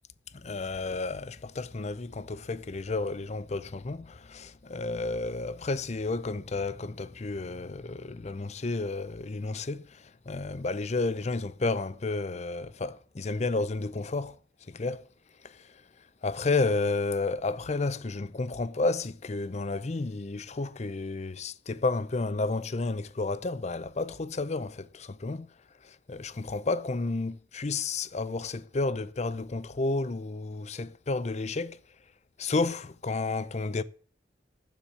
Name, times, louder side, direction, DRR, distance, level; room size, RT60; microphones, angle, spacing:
voice 1, 0.3-14.4 14.7-15.1 15.4-15.8 16.2-25.5 25.8-31.8 32.4-33.8, left 3 dB, 40° left, 0.6 m, -31 dB
7.3 x 7.2 x 8.1 m
head